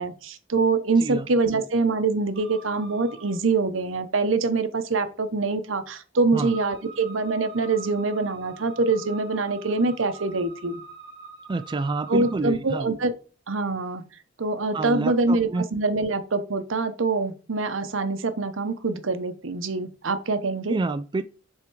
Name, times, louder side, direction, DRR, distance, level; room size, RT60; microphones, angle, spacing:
voice 1, 0.0-10.8 12.1-13.1 13.5-14.0 14.4-20.8, right 3 dB, 80° right, 0.8 m, -25 dB
sound 1, 2.3-3.4 6.4-12.4, right 4 dB, 60° right, 1.3 m, -45 dB
voice 2, 11.5-12.9 14.7-15.6 20.7-21.2, right 3 dB, 25° right, 0.3 m, -28 dB
7.9 x 3.7 x 4.6 m
head